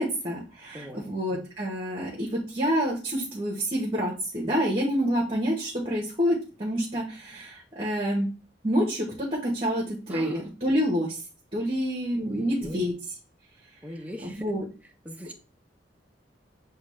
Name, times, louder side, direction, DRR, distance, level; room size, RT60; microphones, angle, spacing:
voice 1, 0.0-8.3 8.6-11.2 11.5-12.9 14.2-14.6, equal, 35° right, -2 dB, 1.1 m, -27 dB
voice 2, 10.1-10.4 12.2-12.8 13.8-14.4 15.0-15.3, equal, 10° right, 3 dB, 0.6 m, -40 dB
6.9 x 2.3 x 3.2 m, 0.32 s
head